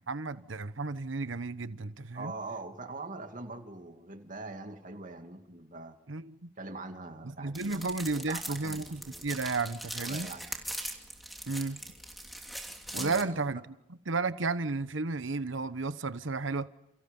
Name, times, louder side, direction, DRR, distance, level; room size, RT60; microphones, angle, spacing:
voice 1, 0.0-2.3 6.1-6.4 7.4-10.3 11.5-11.8 12.9-13.7 14.1-16.7, right 3 dB, 85° right, 1.1 m, -33 dB
voice 2, 2.1-6.0 6.6-7.9 8.1-9.2 9.9-10.4 12.9-13.4, right 2 dB, 45° right, 2.5 m, -43 dB
sound 1, 7.5-13.2, right 1 dB, ahead, 2.9 m, -41 dB
29.5 x 29.0 x 5.5 m
head